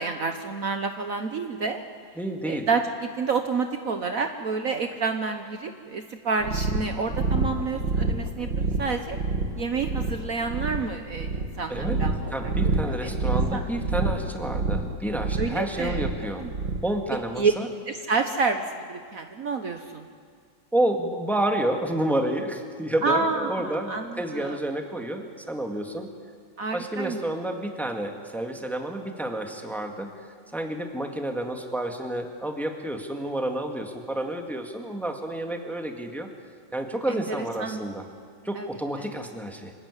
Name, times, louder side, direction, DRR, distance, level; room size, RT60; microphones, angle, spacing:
voice 1, 0.0-1.8 2.4-9.2 9.6-12.3 13.0-13.2 13.5-13.7 15.4-16.0 16.4-16.5 17.4-17.5 17.9-20.1 23.0-24.6 26.6-27.2 37.1-37.2 37.6-37.8 38.6-38.7, right 4 dB, 55° right, 6 dB, 1.3 m, -29 dB
voice 2, 2.2-2.7 11.7-12.0 12.3-16.4 16.8-17.7 20.7-26.1 26.7-36.3 36.7-38.0 38.4-39.7, right 1 dB, ahead, 4 dB, 1.8 m, -30 dB
sound 1, 6.4-17.0, right 3 dB, 75° right, 2.2 m, -28 dB
26.0 x 16.5 x 9.8 m, 2.1 s
omnidirectional pair, 2.0 m